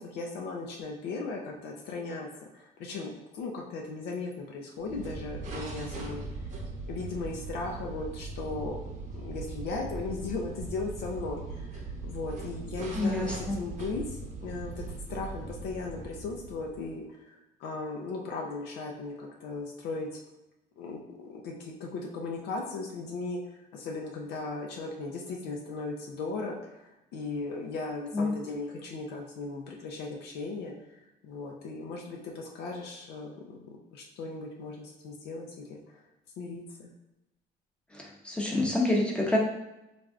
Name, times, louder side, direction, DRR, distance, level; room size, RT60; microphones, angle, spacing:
voice 1, 0.0-2.3 2.5-6.2 6.9-8.8 9.1-14.8 15.1-20.2 20.8-30.7 31.2-36.0 36.4-36.9, left 3 dB, 80° left, 0 dB, 0.5 m, -37 dB
sound 1, 4.8-17.0, right 3 dB, 45° right, 0.7 m, -40 dB
voice 2, 13.0-13.6 28.1-28.3 37.9-39.4, left 2 dB, 5° left, -2 dB, 0.7 m, -27 dB
3.3 x 2.5 x 2.4 m, 0.96 s
cardioid pair, 110°, 17 cm